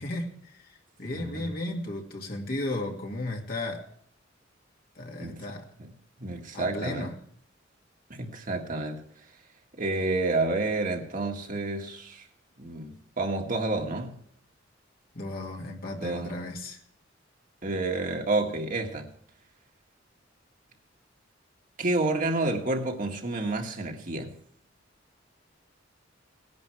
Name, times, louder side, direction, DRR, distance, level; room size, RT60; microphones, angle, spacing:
voice 1, 0.0-3.9 5.0-5.7 6.5-7.2 15.1-16.8, left 1 dB, 50° left, 2.3 m, -35 dB
voice 2, 1.1-1.5 5.2-5.4 5.8-5.9 6.2-7.1 8.1-9.0 9.8-12.3 12.6-14.2 15.9-16.4 17.6-19.1 21.8-24.3, right 2 dB, 45° right, 1.8 m, -29 dB
18.5 x 11.0 x 3.4 m
head